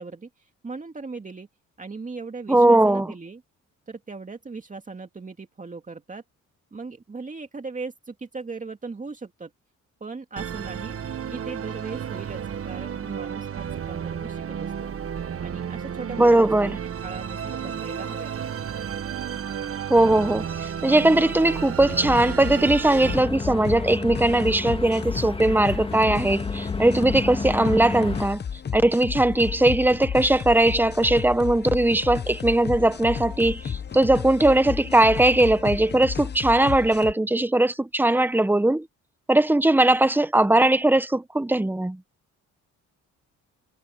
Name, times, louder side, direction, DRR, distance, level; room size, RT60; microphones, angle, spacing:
voice 1, 0.0-1.5 1.8-3.4 3.9-6.2 6.7-9.5 10.0-11.0 11.3-14.9 15.4-16.8 17.0-18.3, right 4 dB, 25° right, 2.5 m, -38 dB
voice 2, 2.5-3.1 16.2-16.8 19.9-20.5 20.8-28.4 28.7-38.9 39.3-42.0, right 1 dB, 5° right, 1.1 m, -19 dB
Musical instrument, 10.4-23.2, right 8 dB, 50° right, 1.5 m, -32 dB
sound 1, 21.8-37.1, left 7 dB, 35° left, 0.9 m, -33 dB
sound 2, 23.0-28.3, left 3 dB, 20° left, 2.2 m, -32 dB
cardioid pair, 90°, 30 cm